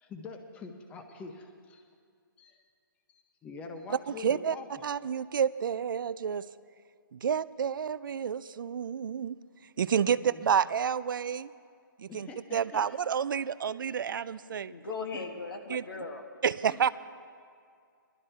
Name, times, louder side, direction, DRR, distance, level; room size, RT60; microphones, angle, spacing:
voice 1, 0.0-1.8 2.4-2.6 3.1-4.7 10.1-10.5 12.1-13.0 15.1-15.2 16.7-16.9, left 4 dB, 10° left, 5 dB, 0.7 m, -45 dB
voice 2, 3.9-4.6 4.8-6.5 7.1-9.4 9.8-11.5 12.0-14.7 15.7-15.8 16.4-16.9, right 7 dB, 65° right, 16 dB, 0.4 m, -29 dB
voice 3, 14.7-16.2, left 4 dB, 75° left, 3 dB, 1.7 m, -38 dB
19.5 x 12.0 x 3.3 m, 2.2 s
hypercardioid pair, 155°, 12 cm